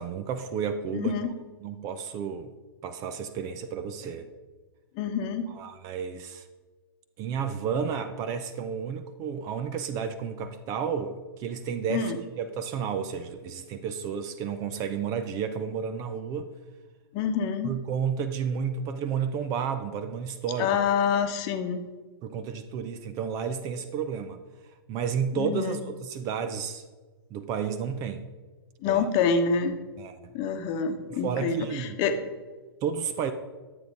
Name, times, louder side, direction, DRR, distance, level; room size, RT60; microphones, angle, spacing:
voice 1, 0.0-1.1 1.6-2.5 2.8-4.3 5.5-6.5 7.2-12.1 12.4-16.5 17.6-20.8 22.2-24.4 24.9-26.8 27.3-28.3 28.9-29.1 30.0-30.3 31.1-32.0 32.8-33.3, right 7 dB, 25° right, 10 dB, 0.7 m, -31 dB
voice 2, 0.9-1.4 5.0-5.5 11.9-12.2 17.1-17.7 20.6-21.8 25.4-25.8 28.8-29.8 30.3-32.2, left 6 dB, 30° left, 7 dB, 1.1 m, -27 dB
11.5 x 7.9 x 5.1 m, 1.3 s
figure-of-eight pair, 110°, 13 cm